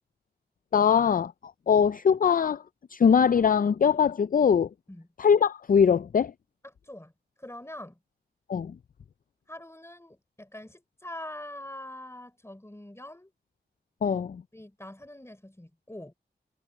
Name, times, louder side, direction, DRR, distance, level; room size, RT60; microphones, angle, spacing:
voice 1, 0.7-1.3 1.7-2.6 2.9-4.7 5.2-6.3 8.5-8.7 14.0-14.3, left 7 dB, 50° left, 0.4 m, -22 dB
voice 2, 6.6-7.1 7.4-8.0 9.5-13.3 14.0-14.2 14.5-16.1, left 1 dB, 15° left, 3.9 m, -44 dB
wide cardioid pair, 65°, 18 cm